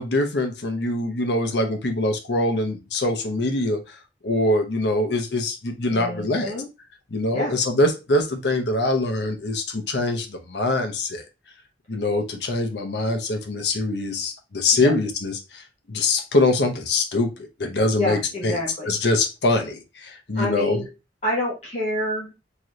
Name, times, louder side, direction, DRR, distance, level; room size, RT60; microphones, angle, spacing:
voice 1, 0.0-4.0 4.2-6.5 7.1-11.2 11.9-18.2 18.4-18.6 18.9-20.8, left 2 dB, 70° left, 6 dB, 0.9 m, -23 dB
voice 2, 5.9-6.7 7.3-7.5 14.7-14.9 18.0-18.9 20.3-20.9 21.2-22.3, left 1 dB, 40° left, -3 dB, 1.3 m, -27 dB
3.7 x 3.0 x 3.1 m, 0.27 s
head